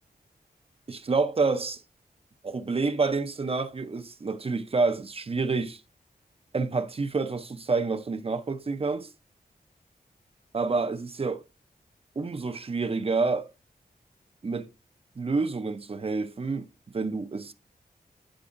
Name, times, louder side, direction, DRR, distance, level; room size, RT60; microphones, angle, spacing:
voice 1, 0.9-1.8 2.4-5.8 6.5-9.1 10.5-11.4 12.2-13.5 14.4-14.7 15.2-16.7 16.9-17.5, right 4 dB, 35° right, 0.7 m, -28 dB
10.0 x 4.7 x 2.6 m
wide cardioid pair, 115°, 16 cm